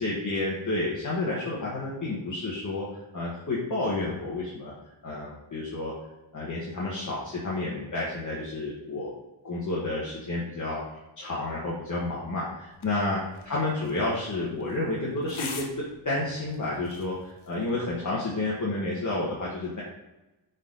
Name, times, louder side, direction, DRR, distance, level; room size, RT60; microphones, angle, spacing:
voice 1, 0.0-4.7 5.0-5.9 6.3-9.1 9.4-10.8 11.2-15.7 16.0-19.8, left 2 dB, 40° left, -6 dB, 1.7 m, -30 dB
sound 1, 12.7-17.7, left 5 dB, 90° left, 1.1 m, -45 dB
10.5 x 4.3 x 4.1 m, 0.99 s
wide cardioid pair, 155°, 47 cm